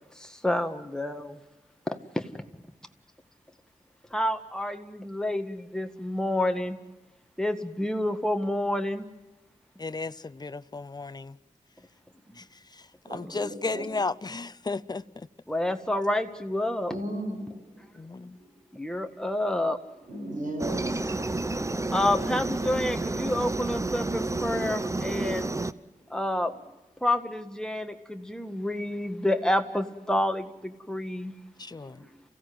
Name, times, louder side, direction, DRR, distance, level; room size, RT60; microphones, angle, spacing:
voice 1, 0.1-1.4 1.8-2.5 4.0-6.8 7.4-9.1 11.8-11.9 12.2-12.5 13.2-13.4 15.5-17.0 18.7-19.8 21.9-25.5 26.1-26.6 27.0-31.4 32.0-32.1, left 1 dB, 5° left, 1.8 m, -29 dB
voice 2, 9.8-11.4 12.4-15.3 18.0-18.4 31.6-32.0, left 3 dB, 30° left, 0.7 m, -34 dB
voice 3, 13.0-13.8 16.9-17.9 18.3-18.5 20.1-21.9 26.1-26.2 31.8-32.1, right 1 dB, 85° right, 7.7 m, -37 dB
Aircraft, 20.6-25.7, right 2 dB, 20° right, 0.8 m, -30 dB
28.5 x 16.5 x 7.8 m
wide cardioid pair, 90°, 13 cm